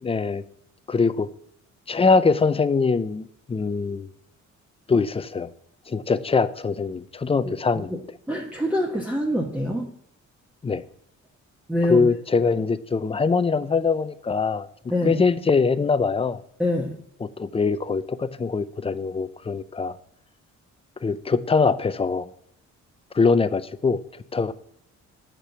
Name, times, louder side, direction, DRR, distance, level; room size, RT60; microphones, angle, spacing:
voice 1, 0.0-0.4 0.9-1.3 1.9-4.1 4.9-5.5 5.9-7.9 10.6-10.8 11.9-14.7 15.0-16.4 17.2-20.0 21.0-22.3 23.1-24.5, left 4 dB, 20° left, 13 dB, 0.5 m, -23 dB
voice 2, 8.3-9.9 11.7-12.1 14.9-15.2 16.6-17.0, left 1 dB, 5° right, -1 dB, 1.0 m, -25 dB
6.7 x 4.5 x 6.6 m, 0.68 s
cardioid pair, 90°, 30 cm